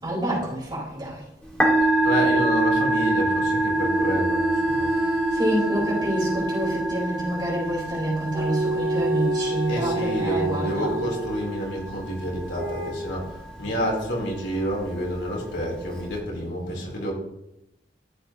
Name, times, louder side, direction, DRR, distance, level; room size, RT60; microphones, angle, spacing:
voice 1, 0.0-1.2 4.9-11.1, right 1 dB, 25° right, 4.4 m, -28 dB
Musical instrument, 1.4-16.2, right 2 dB, 5° left, 2.2 m, -27 dB
voice 2, 2.0-4.9 9.7-17.1, equal, 85° left, 3.8 m, -29 dB
sound 1, 3.7-7.2 8.3-11.4 12.5-12.9, right 1 dB, 60° right, 3.2 m, -28 dB
13.5 x 7.9 x 3.0 m
head